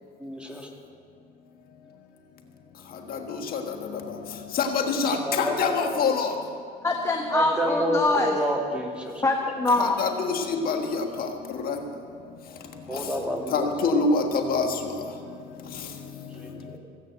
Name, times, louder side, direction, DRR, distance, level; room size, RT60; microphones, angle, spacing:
voice 1, 0.2-0.7 5.2-6.0 7.3-9.2 12.9-13.9 16.3-16.8, equal, 5° right, 0 dB, 2.4 m, -29 dB
voice 2, 4.6-6.3 9.8-11.0 11.6-11.8 13.5-14.7, left 4 dB, 60° left, 4 dB, 1.5 m, -25 dB
voice 3, 6.8-8.4 9.2-10.0, left 2 dB, 15° left, 2 dB, 1.2 m, -24 dB
16.5 x 8.6 x 7.9 m, 2.3 s
cardioid pair, 110°, 17 cm